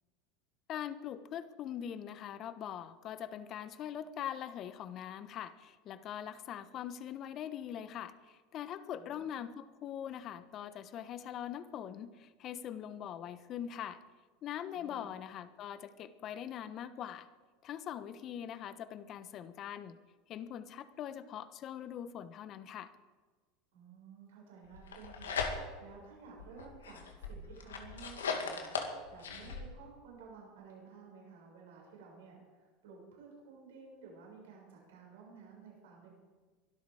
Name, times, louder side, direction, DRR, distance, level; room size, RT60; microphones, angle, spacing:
voice 1, 0.7-14.0 14.4-17.3 17.6-20.0 20.3-22.9, left 10 dB, 45° left, 13 dB, 1.1 m, -42 dB
voice 2, 8.9-9.4 14.7-15.1 23.7-36.1, right 5 dB, 80° right, -2 dB, 6.2 m, -54 dB
sound 1, 24.7-25.9 26.4-29.6, left 5 dB, 90° left, 2.1 m, -38 dB
23.0 x 12.5 x 4.9 m, 1.4 s
hypercardioid pair, 90°, 0 cm